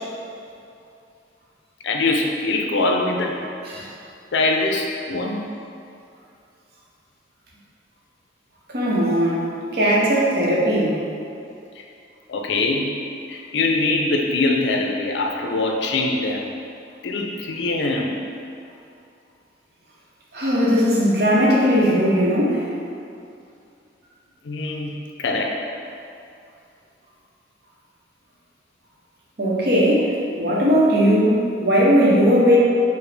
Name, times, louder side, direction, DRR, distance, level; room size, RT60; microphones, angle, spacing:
voice 1, 1.8-3.4 4.3-5.4 11.8-11.9 12.3-12.9 13.3-16.5 17.0-18.2 20.8-20.9 24.4-24.9 25.2-25.5, left 2 dB, 75° left, 1 dB, 0.4 m, -23 dB
voice 2, 8.7-9.5 9.7-11.0 20.3-22.6 29.4-32.6, equal, 55° right, -6 dB, 0.7 m, -18 dB
4.8 x 2.0 x 3.2 m, 2.6 s
head